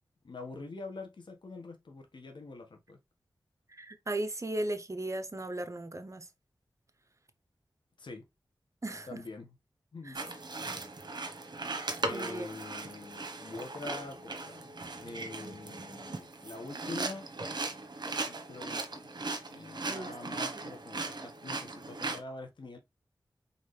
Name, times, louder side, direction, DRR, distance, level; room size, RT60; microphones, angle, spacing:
voice 1, 0.2-3.0 8.0-8.2 9.1-9.6 9.9-10.2 12.0-14.7 15.0-17.3 18.2-19.1 19.5-22.8, left 3 dB, 70° left, 1.5 m, -45 dB
voice 2, 3.7-6.3 8.8-9.2 10.0-10.2 12.1-12.6 19.9-20.7, right 1 dB, 40° right, 0.9 m, -37 dB
sound 1, 10.1-22.2, right 3 dB, 60° right, 1.1 m, -38 dB
4.2 x 3.6 x 3.3 m
cardioid pair, 40°, 8 cm